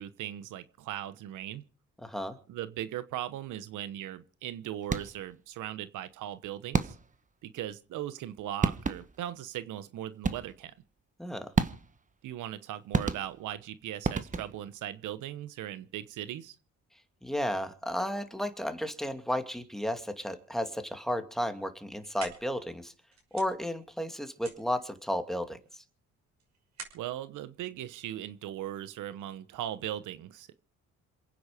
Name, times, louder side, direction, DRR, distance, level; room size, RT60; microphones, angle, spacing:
voice 1, 0.0-1.6 2.5-7.0 7.4-10.7 12.2-16.6 26.9-30.5, right 12 dB, 85° right, 1.1 m, -38 dB
voice 2, 2.0-2.4 11.2-11.5 17.2-22.9 23.3-25.8, equal, ahead, 2.5 m, -33 dB
sound 1, 4.8-5.3 6.7-7.3 8.3-8.4 8.6-9.3 10.2-10.7 11.6-12.1 12.9-13.6 14.0-14.7, right 4 dB, 25° right, 1.4 m, -31 dB
sound 2, 21.7-28.6, right 5 dB, 65° right, 6.1 m, -50 dB
27.5 x 9.5 x 5.1 m
cardioid pair, 90°, 30 cm